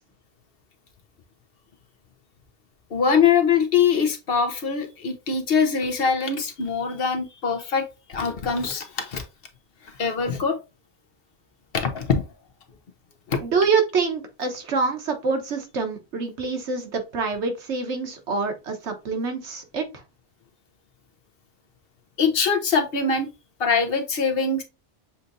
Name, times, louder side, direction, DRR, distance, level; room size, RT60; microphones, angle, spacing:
voice 1, 2.9-9.2 9.8-10.6 11.7-12.3 13.3-13.4 22.2-23.3 23.6-24.6, left 5 dB, 60° left, 6 dB, 1.0 m, -23 dB
voice 2, 13.4-19.8, right 4 dB, 90° right, 5 dB, 1.3 m, -26 dB
7.0 x 2.7 x 2.5 m, 0.27 s
omnidirectional pair, 1.1 m